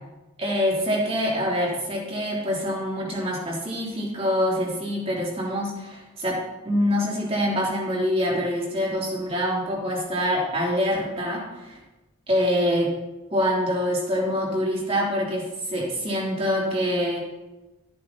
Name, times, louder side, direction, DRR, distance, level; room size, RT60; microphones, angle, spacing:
voice 1, 0.4-6.4 6.6-11.8 12.3-12.9 13.3-17.2, equal, 30° right, -3 dB, 3.0 m, -25 dB
13.5 x 8.9 x 4.0 m, 1.1 s
head